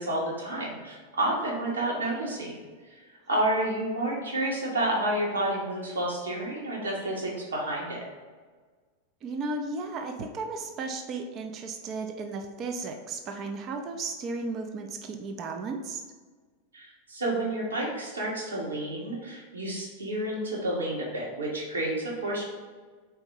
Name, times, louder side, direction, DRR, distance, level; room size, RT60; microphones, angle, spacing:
voice 1, 0.0-2.6 2.9-3.0 3.3-8.0 16.7-22.4, right 1 dB, 70° right, -4 dB, 1.8 m, -30 dB
voice 2, 9.2-16.0, right 3 dB, 35° right, 5 dB, 0.6 m, -34 dB
4.5 x 4.4 x 5.4 m, 1.5 s
figure-of-eight pair, 90°, 0 cm